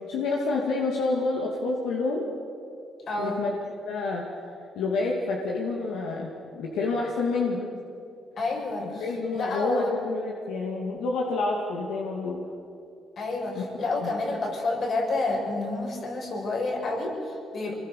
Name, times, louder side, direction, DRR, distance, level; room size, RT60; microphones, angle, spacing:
voice 1, 0.1-2.3 3.2-3.6 3.8-4.2 4.8-7.9 9.0-12.4 13.6-13.7 14.0-14.1, left 3 dB, 85° left, -2 dB, 2.6 m, -28 dB
voice 2, 3.1-3.4 8.4-10.0 13.2-17.7, left 2 dB, 60° left, 0 dB, 6.4 m, -29 dB
25.5 x 21.0 x 6.7 m, 2.6 s
cardioid pair, 90°, 0 cm